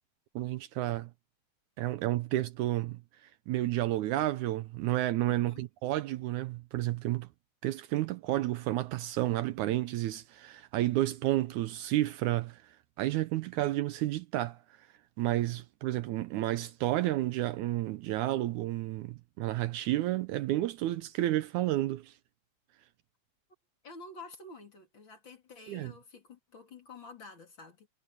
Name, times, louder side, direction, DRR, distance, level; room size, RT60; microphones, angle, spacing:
voice 1, 0.4-1.1 1.8-3.0 3.5-7.3 7.6-12.6 13.0-14.6 15.2-22.1 25.7-25.9, right 15 dB, 80° right, 2.0 m, -31 dB
voice 2, 5.3-5.6 23.8-27.9, left 3 dB, 40° left, 3.1 m, -49 dB
omnidirectional pair, 3.7 m